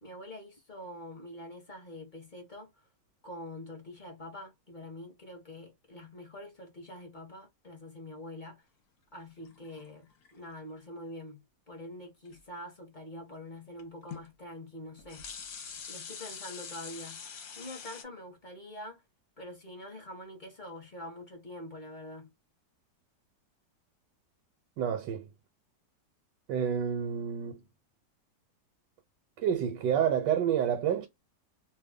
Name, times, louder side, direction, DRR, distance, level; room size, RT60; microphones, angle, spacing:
voice 1, 0.0-2.9 3.2-8.7 9.1-15.2 15.9-17.2 17.6-19.0 19.4-22.3, left 1 dB, 35° left, 0.8 m, -45 dB
sound 1, 9.4-10.5 12.3-12.4 13.8-13.9 14.1-14.3 14.9-18.0, left 6 dB, 60° left, 1.1 m, -44 dB
voice 2, 24.8-25.3 26.5-27.6 29.4-31.1, right 8 dB, 85° right, 1.3 m, -29 dB
2.8 x 2.2 x 3.5 m
omnidirectional pair, 1.9 m